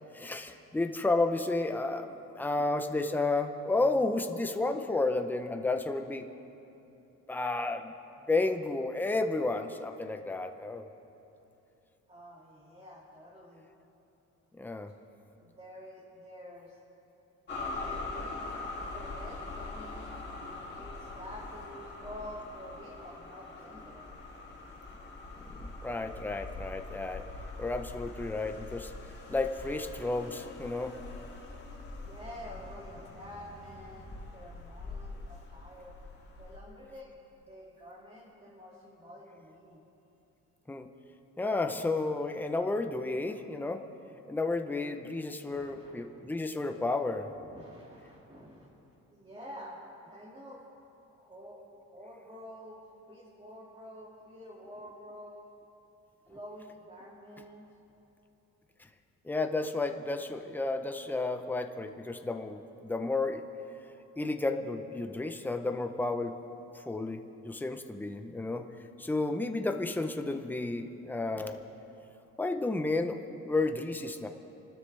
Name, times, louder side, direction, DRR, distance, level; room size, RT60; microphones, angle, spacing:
voice 1, 0.1-6.3 7.3-7.9 8.3-10.9 14.6-14.9 25.5-27.3 27.6-28.9 29.3-30.9 40.7-40.9 41.4-43.8 44.3-47.3 59.2-63.5 64.2-66.4 66.9-68.6 69.0-71.6 72.4-74.3, left 2 dB, 5° left, 6 dB, 0.7 m, -32 dB
voice 2, 12.1-13.7 15.4-16.8 17.7-24.1 32.0-36.0 36.4-39.9 45.5-46.0 47.2-48.7 49.1-49.8 50.0-50.6 51.1-51.6 51.9-52.8 53.1-55.5 56.3-57.7, equal, 20° right, -6 dB, 2.3 m, -48 dB
sound 1, 17.5-36.6, left 3 dB, 35° left, 2.6 m, -43 dB
29.0 x 12.5 x 3.4 m, 2.9 s
cardioid pair, 150°, 30 cm